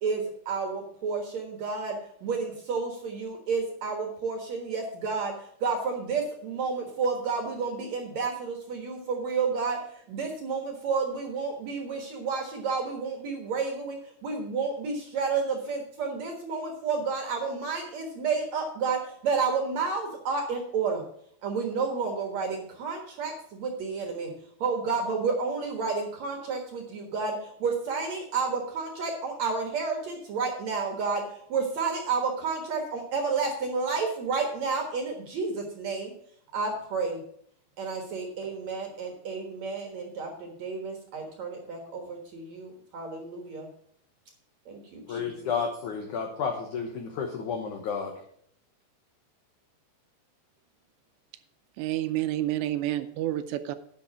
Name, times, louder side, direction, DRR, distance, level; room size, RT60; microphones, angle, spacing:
voice 1, 0.0-5.3 5.6-9.8 10.1-21.0 21.4-24.3 24.6-27.4 27.6-31.2 31.5-36.1 36.5-37.2 37.8-43.7 44.7-45.3, right 4 dB, 60° right, 1.9 m, -30 dB
voice 2, 45.1-48.1, left 6 dB, 90° left, 1.7 m, -31 dB
voice 3, 51.8-53.8, right 14 dB, 80° right, 2.7 m, -29 dB
10.5 x 5.9 x 7.4 m
omnidirectional pair, 5.2 m